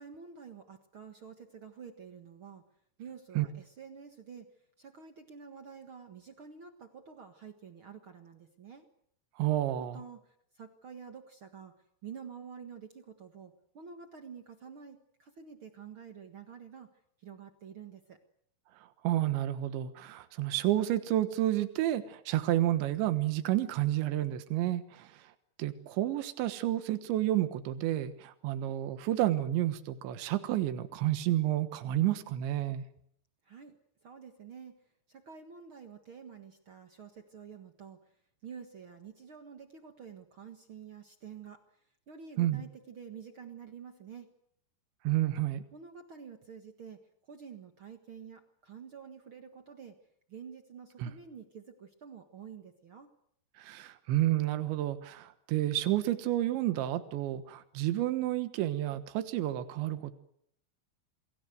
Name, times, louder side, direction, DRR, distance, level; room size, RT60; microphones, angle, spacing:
voice 1, 0.0-2.6 3.0-4.5 4.8-8.9 9.8-11.8 12.0-16.9 17.2-18.2 33.4-33.8 34.0-34.7 35.1-38.0 38.4-44.3 45.7-50.0 50.3-53.1, right 7 dB, 70° right, 6 dB, 1.2 m, -49 dB
voice 2, 9.4-10.0 19.0-25.3 25.6-32.9 42.4-42.6 45.1-45.6 51.0-51.1 53.6-60.1, right 14 dB, 85° right, 10 dB, 3.7 m, -30 dB
28.5 x 21.0 x 7.9 m, 0.71 s
omnidirectional pair, 5.1 m